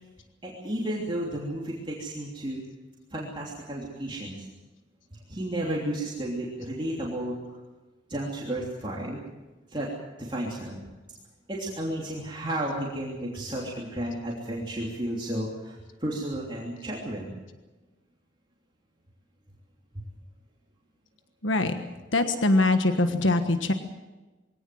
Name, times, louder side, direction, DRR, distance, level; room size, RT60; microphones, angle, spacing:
voice 1, 0.4-2.6 3.1-4.4 5.3-7.6 8.1-9.2 9.7-9.9 10.2-10.8 11.5-17.3 19.9-20.0, right 1 dB, 25° right, -4 dB, 3.1 m, -32 dB
voice 2, 21.4-21.8 22.1-23.7, left 2 dB, 85° left, 7 dB, 1.4 m, -23 dB
23.0 x 17.5 x 7.7 m, 1.2 s
head